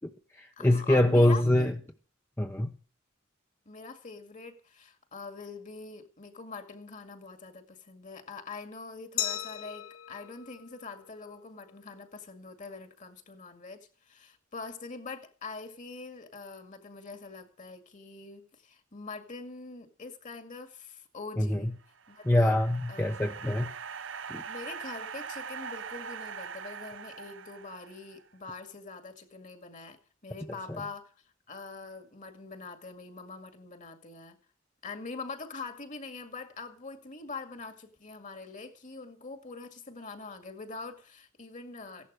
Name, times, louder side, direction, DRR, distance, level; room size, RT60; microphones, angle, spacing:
voice 1, 0.0-1.7 2.4-2.7 21.4-21.7 22.2-23.7 24.3-24.4, left 1 dB, 10° left, 0.9 m, -24 dB
voice 2, 0.6-1.7 3.7-21.7 22.1-22.6 22.9-23.3 24.5-34.4 34.8-42.1, left 4 dB, 40° left, 2.1 m, -44 dB
Glass, 9.2-11.9, left 12 dB, 85° left, 1.0 m, -38 dB
sound 1, 21.8-28.2, right 6 dB, 65° right, 0.7 m, -42 dB
16.0 x 11.5 x 6.2 m
head